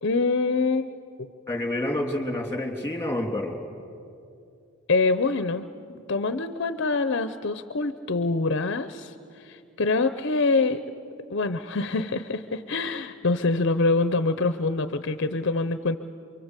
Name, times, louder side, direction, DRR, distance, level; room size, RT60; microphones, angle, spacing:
voice 1, 0.0-1.3 4.9-10.8 11.3-16.0, left 3 dB, 55° left, 11 dB, 0.7 m, -25 dB
voice 2, 1.5-3.6, left 1 dB, 10° left, 3 dB, 3.1 m, -28 dB
28.0 x 24.0 x 8.2 m, 2.5 s
head